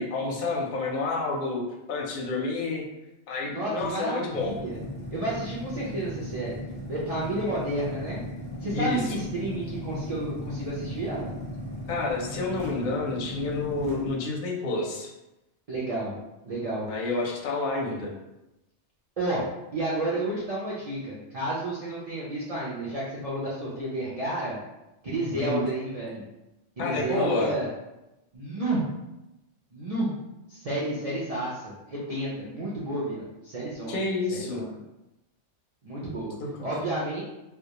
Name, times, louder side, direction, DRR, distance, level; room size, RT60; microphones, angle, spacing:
voice 1, 0.0-1.6 1.9-2.8 3.3-4.5 8.7-9.2 11.9-15.1 16.9-18.1 25.4-25.6 26.8-27.5 33.9-34.7 36.4-36.5, left 3 dB, 55° left, -2 dB, 0.6 m, -29 dB
voice 2, 3.4-4.8 5.1-6.5 6.9-8.2 8.6-11.4 15.7-16.1 16.4-16.9 19.2-19.5 19.7-24.6 25.0-26.2 26.8-27.7 28.3-28.8 29.7-30.1 30.5-34.0 34.3-34.7 35.8-36.4 36.6-37.2, right 1 dB, 60° right, -7 dB, 0.4 m, -31 dB
sound 1, 4.4-14.1, left 1 dB, 10° left, 0.5 m, -37 dB
2.2 x 2.1 x 2.8 m, 0.96 s
omnidirectional pair, 1.2 m